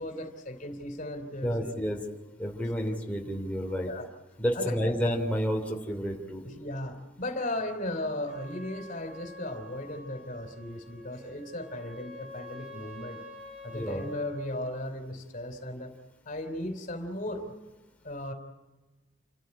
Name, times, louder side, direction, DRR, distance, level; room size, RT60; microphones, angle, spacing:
voice 1, 0.0-1.7 3.8-4.1 4.5-4.9 6.4-13.2 13.6-15.9 16.2-17.5 18.0-18.3, left 1 dB, 45° left, 7 dB, 3.3 m, -36 dB
voice 2, 1.4-2.0 2.4-3.9 4.4-6.4 13.7-14.1, equal, 10° left, 1 dB, 3.0 m, -30 dB
Trumpet, 8.2-14.5, left 2 dB, 40° right, 6.4 m, -47 dB
29.0 x 14.0 x 9.9 m, 1.2 s
head